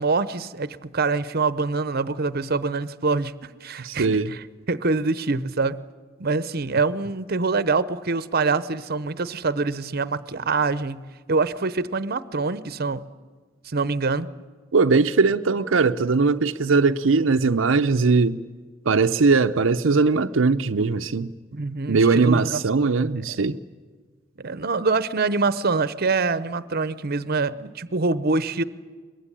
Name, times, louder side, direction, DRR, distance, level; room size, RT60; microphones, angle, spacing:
voice 1, 0.0-3.3 3.6-5.8 6.2-11.0 11.3-13.0 13.6-14.3 21.5-22.6 23.4-23.5 24.4-28.6, right 3 dB, 50° right, 0.8 m, -25 dB
voice 2, 3.8-4.3 14.7-18.4 18.9-21.3 21.9-23.6, right 4 dB, 80° right, 0.7 m, -20 dB
23.0 x 22.0 x 10.0 m
head